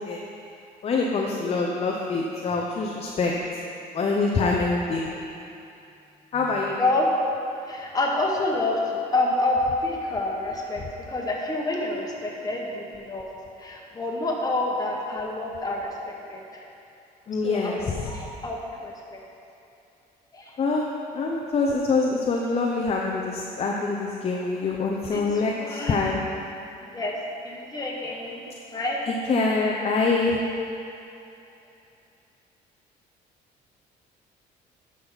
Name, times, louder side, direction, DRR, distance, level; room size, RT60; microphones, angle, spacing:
voice 1, 0.8-3.3 3.9-5.0 6.3-6.8 17.3-18.1 20.6-20.9 21.1-26.2 29.3-30.4, left 3 dB, 35° left, -1 dB, 0.8 m, -25 dB
voice 2, 6.8-7.1 7.7-13.3 13.6-16.6 17.4-19.2 20.3-20.5 25.1-26.0 26.8-27.1 27.4-29.2, left 2 dB, 20° left, -2 dB, 1.5 m, -28 dB
11.0 x 6.2 x 4.1 m, 2.7 s
cardioid pair, 110°, 17 cm